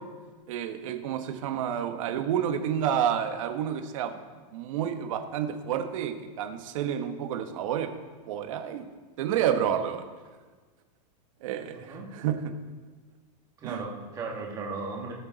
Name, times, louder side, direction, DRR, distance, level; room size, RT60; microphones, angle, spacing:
voice 1, 0.5-4.1 4.5-7.9 8.3-8.8 9.2-10.0 11.4-12.4 13.6-13.8, right 9 dB, 55° right, 6 dB, 1.1 m, -29 dB
voice 2, 11.7-12.1 13.6-15.1, right 3 dB, 15° right, -1 dB, 1.6 m, -36 dB
17.0 x 6.9 x 4.0 m, 1.4 s
supercardioid pair, 170°, 21 cm